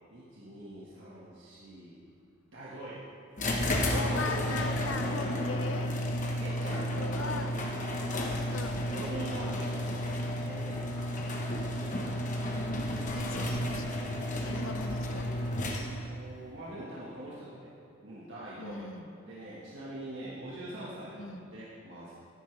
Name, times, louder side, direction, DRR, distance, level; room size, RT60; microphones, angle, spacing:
voice 1, 0.1-2.0 2.5-3.1 6.4-7.9 8.9-11.3 16.0-17.7 18.0-18.9 19.2-22.1, right 1 dB, 60° right, -8 dB, 1.7 m, -44 dB
sound 1, 3.4-16.2, left 1 dB, 40° left, 1.2 m, -32 dB
voice 2, 3.8-6.4 6.7-7.6 8.3-8.9 13.1-14.2 14.4-15.3 18.6-19.1 21.1-21.5, left 3 dB, 65° left, 7 dB, 0.8 m, -40 dB
13.5 x 11.0 x 3.4 m, 2.7 s
head